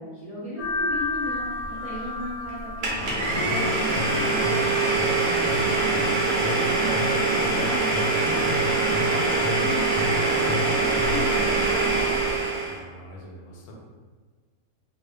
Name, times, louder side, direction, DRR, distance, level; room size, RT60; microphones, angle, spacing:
voice 1, 0.0-4.7 5.0-7.9 8.2-12.0, left 1 dB, 35° right, -13 dB, 0.5 m, -36 dB
sound 1, 0.6-12.5, left 2 dB, 10° left, 1.0 m, -35 dB
Domestic sounds home sounds, 2.8-12.8, right 3 dB, 75° right, 1.0 m, -24 dB
Acoustic guitar, 3.4-11.4, left 1 dB, 60° left, 1.0 m, -33 dB
voice 2, 12.7-13.7, equal, 80° left, -2 dB, 1.1 m, -44 dB
2.8 x 2.1 x 2.2 m, 1.5 s
omnidirectional pair, 1.6 m